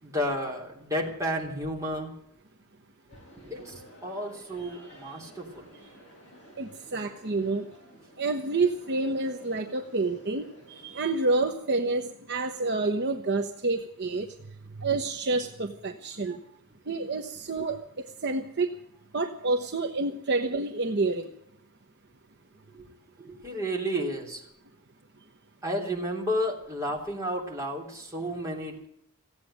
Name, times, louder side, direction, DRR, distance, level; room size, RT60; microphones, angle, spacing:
voice 1, 0.0-2.1 3.3-5.7 22.7-22.9 23.2-24.4 25.6-28.9, equal, 15° right, -2 dB, 3.3 m, -32 dB
sound 1, 3.1-11.5, equal, 30° left, 7.9 m, -53 dB
voice 2, 6.6-7.6 8.2-10.4 10.8-14.3 14.8-16.4 16.9-18.7 19.1-21.3, right 3 dB, 50° right, 6 dB, 1.0 m, -28 dB
16.5 x 8.5 x 9.9 m, 0.78 s
head